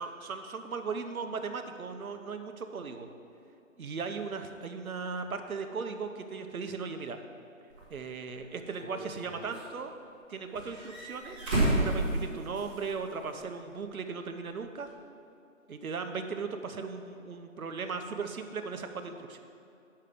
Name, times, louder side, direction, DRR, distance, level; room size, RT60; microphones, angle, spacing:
voice 1, 0.0-3.1 3.8-7.2 7.9-9.9 10.3-11.4 11.7-14.9 15.7-19.4, right 5 dB, 90° right, 7 dB, 0.9 m, -37 dB
sound 1, 7.7-7.8 8.7-9.6 10.5-12.9 13.2-13.3 14.9-15.0, right 1 dB, 5° right, 0.8 m, -31 dB
8.5 x 5.7 x 5.1 m, 2.6 s
hypercardioid pair, 170°, 41 cm